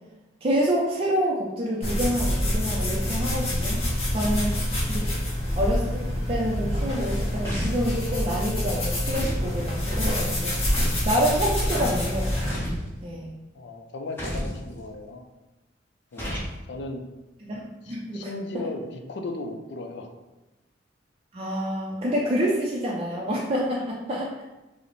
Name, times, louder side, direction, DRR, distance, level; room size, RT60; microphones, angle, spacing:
voice 1, 0.4-3.8 4.1-4.5 4.9-5.1 5.6-5.9 6.3-10.6 11.0-12.7 13.0-13.3 17.4-18.3 21.3-24.4, equal, 30° right, -4 dB, 0.4 m, -27 dB
sound 1, 1.8-12.5, left 1 dB, 35° left, 1.1 m, -26 dB
Magic Impact Body Hit, 7.4-7.9 9.1-9.5 10.7-11.1 12.5-12.9 14.2-14.6 16.2-16.5, equal, 15° left, 0.8 m, -31 dB
voice 2, 13.5-15.3 16.1-17.0 17.8-20.1, left 2 dB, 65° left, 4 dB, 0.5 m, -36 dB
4.8 x 2.0 x 3.0 m, 1.0 s
head